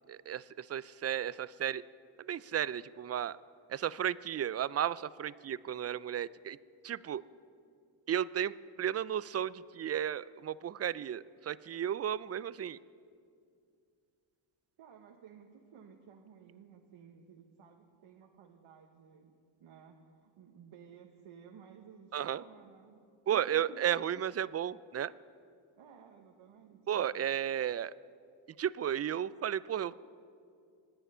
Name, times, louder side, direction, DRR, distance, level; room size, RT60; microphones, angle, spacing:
voice 1, 0.1-1.8 2.2-3.4 3.7-6.6 6.8-7.2 8.1-12.8 22.1-22.4 23.3-25.1 26.9-27.9 28.6-29.9, right 10 dB, 35° right, 19 dB, 0.4 m, -34 dB
voice 2, 14.8-24.1 25.8-27.1, right 7 dB, 80° right, 2 dB, 1.3 m, -56 dB
26.0 x 10.0 x 5.6 m, 2.4 s
cardioid pair, 80°, 48 cm